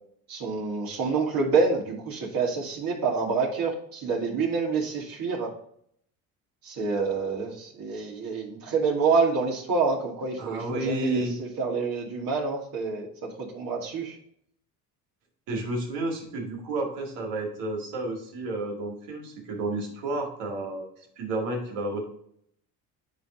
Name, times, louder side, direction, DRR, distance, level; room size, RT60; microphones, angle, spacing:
voice 1, 0.3-5.5 6.6-14.2, right 4 dB, 60° right, -2 dB, 2.5 m, -27 dB
voice 2, 10.4-11.4 15.5-20.9 21.2-22.1, right 2 dB, 90° right, 0 dB, 2.2 m, -31 dB
10.0 x 3.4 x 3.7 m, 0.65 s
supercardioid pair, 80°, 39 cm